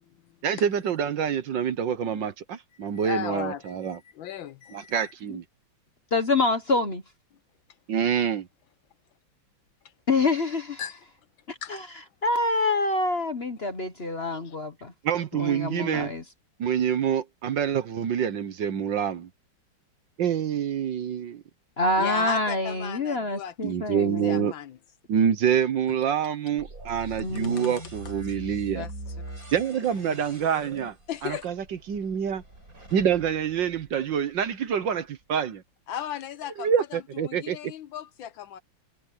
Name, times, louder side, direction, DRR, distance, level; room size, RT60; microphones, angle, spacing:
voice 1, 0.4-4.0 4.7-5.4 7.9-8.5 15.0-16.1 16.6-19.3 20.2-21.4 23.6-24.5 25.1-28.9 29.5-31.0 31.2-32.4 32.9-35.6 36.6-37.7, right 8 dB, 60° right, 1.6 m, -26 dB
voice 2, 2.9-5.1 10.8-11.0 11.6-11.8 14.3-14.6 22.0-23.5 24.2-24.8 27.5-27.6 28.7-28.9 31.1-31.5 35.9-37.0 37.3-38.6, left 10 dB, 70° left, 1.4 m, -36 dB
voice 3, 6.1-7.0 10.1-10.8 11.5-11.8 12.2-14.9 15.3-16.2 21.8-24.5 27.2-27.7, left 2 dB, 35° left, 1.1 m, -26 dB
sound 1, 26.6-34.5, right 1 dB, 40° right, 6.6 m, -42 dB
omnidirectional pair, 2.4 m